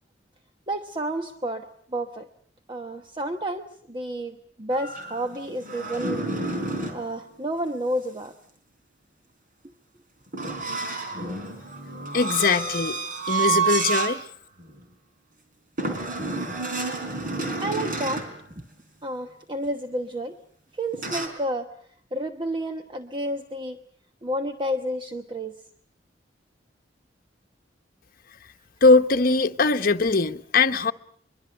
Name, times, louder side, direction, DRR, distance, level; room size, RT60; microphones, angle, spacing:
voice 1, 0.7-2.3 2.7-6.3 6.9-8.3 11.2-11.3 17.6-18.3 19.0-20.4 20.7-21.7 22.1-23.8 24.2-25.5, right 1 dB, 30° right, 1.1 m, -30 dB
sound 1, 4.7-7.0 10.3-14.2 14.6-14.8 15.8-18.4 20.9-21.3, right 4 dB, 50° right, 4.6 m, -29 dB
voice 2, 12.1-13.0 13.3-14.2 28.8-30.9, left 3 dB, 55° left, 1.0 m, -20 dB
23.5 x 23.0 x 7.8 m
head